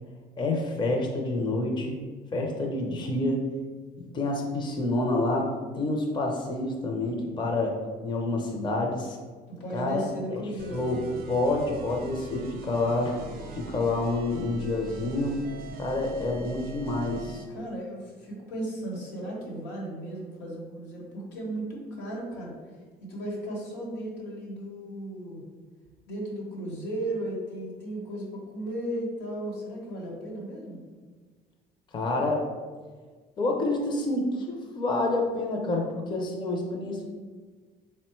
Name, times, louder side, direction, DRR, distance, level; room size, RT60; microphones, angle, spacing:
voice 1, 0.4-2.0 2.3-3.4 4.0-7.8 8.0-9.2 9.7-10.0 10.3-10.4 10.7-11.0 11.3-13.2 13.5-15.4 15.8-17.4 31.9-32.5 33.4-37.1, left 2 dB, 25° left, 1 dB, 0.5 m, -28 dB
voice 2, 9.5-11.2 17.5-22.5 23.0-25.4 26.1-30.8, right 1 dB, 90° left, -3 dB, 1.1 m, -35 dB
Death Tune, 10.6-17.5, right 3 dB, 60° right, 0.6 m, -42 dB
3.7 x 2.1 x 4.3 m, 1.4 s
cardioid pair, 110°, 17 cm